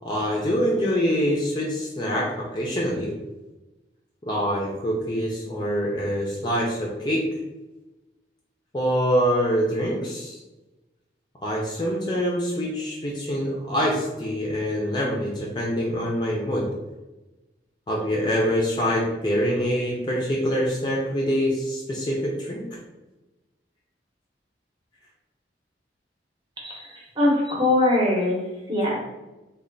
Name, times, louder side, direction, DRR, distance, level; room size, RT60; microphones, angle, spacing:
voice 1, 0.0-3.1 4.2-7.3 8.7-10.4 11.4-16.7 17.9-22.6, equal, 25° left, -2 dB, 0.4 m, -25 dB
voice 2, 26.6-28.4 28.7-29.0, left 1 dB, 25° right, -3 dB, 0.8 m, -22 dB
3.2 x 2.2 x 3.9 m, 1.1 s
head